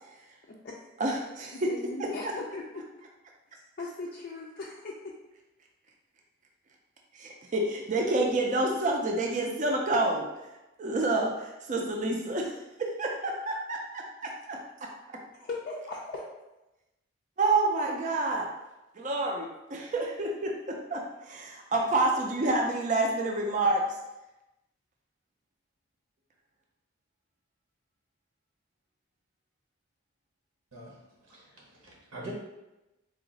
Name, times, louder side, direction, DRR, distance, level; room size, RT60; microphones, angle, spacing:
voice 1, 1.0-1.7 2.0-2.3 7.2-10.3 10.8-12.5 12.8-14.6 17.4-18.5 19.0-23.8, right 2 dB, 35° right, 1 dB, 0.4 m, -28 dB
voice 2, 1.5-2.8 3.8-5.1 15.4-16.2, left 3 dB, 45° left, -3 dB, 0.4 m, -38 dB
voice 3, 31.3-32.3, right 1 dB, 85° right, -2 dB, 1.1 m, -44 dB
3.7 x 2.5 x 3.9 m, 0.99 s
head